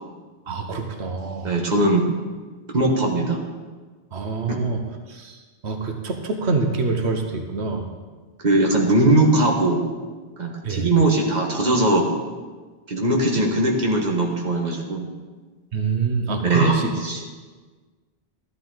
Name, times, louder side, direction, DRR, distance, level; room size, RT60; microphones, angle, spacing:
voice 1, 0.5-1.5 4.1-4.8 5.1-5.4 5.6-7.9 10.6-10.9 15.7-16.9, right 4 dB, 90° right, 4 dB, 1.3 m, -25 dB
voice 2, 1.4-2.1 2.7-3.4 4.5-4.6 8.4-9.8 10.4-12.0 12.9-15.1 16.4-17.2, right 2 dB, 45° right, 0 dB, 1.6 m, -20 dB
13.5 x 11.5 x 4.0 m, 1.4 s
omnidirectional pair, 1.1 m